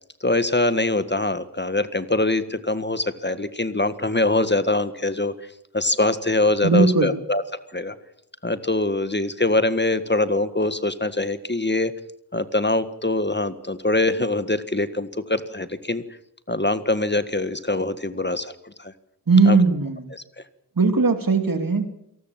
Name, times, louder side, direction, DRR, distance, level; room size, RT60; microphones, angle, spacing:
voice 1, 0.2-5.3 5.7-7.4 7.7-7.9 8.4-11.9 12.3-16.0 16.5-18.9 19.4-19.6 20.1-20.2, left 2 dB, 25° left, 12 dB, 1.7 m, -23 dB
voice 2, 6.6-7.1 19.3-20.1 20.8-21.9, right 4 dB, 60° right, 8 dB, 2.8 m, -18 dB
27.5 x 19.5 x 7.6 m, 0.76 s
wide cardioid pair, 50°, 39 cm